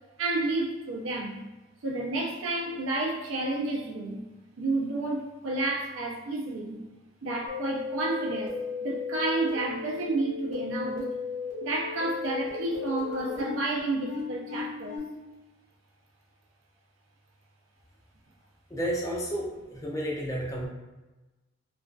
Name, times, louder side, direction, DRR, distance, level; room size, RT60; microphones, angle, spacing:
voice 1, 0.2-1.4 1.8-4.2 4.6-6.8 7.2-8.5 8.8-11.1 11.6-15.0, right 2 dB, 85° right, -1 dB, 0.5 m, -30 dB
sound 1, 7.5-15.0, left 4 dB, 40° right, 0.9 m, -35 dB
voice 2, 18.7-20.7, equal, 15° left, -3 dB, 0.4 m, -31 dB
2.4 x 2.2 x 2.3 m, 1.1 s
head